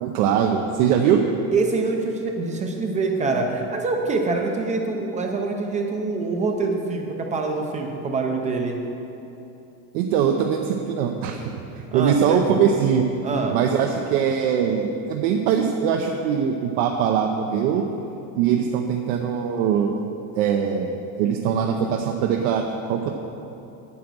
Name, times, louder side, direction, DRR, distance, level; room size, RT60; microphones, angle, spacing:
voice 1, 0.0-1.2 9.9-11.5 11.9-13.1 13.5-17.8 18.4-19.9 20.3-23.1, right 8 dB, 80° right, 3 dB, 0.8 m, -22 dB
voice 2, 1.5-8.8 11.9-12.6 13.2-13.6, right 3 dB, 15° right, 2 dB, 0.4 m, -25 dB
9.2 x 7.7 x 6.1 m, 2.9 s
cardioid pair, 165°, 44 cm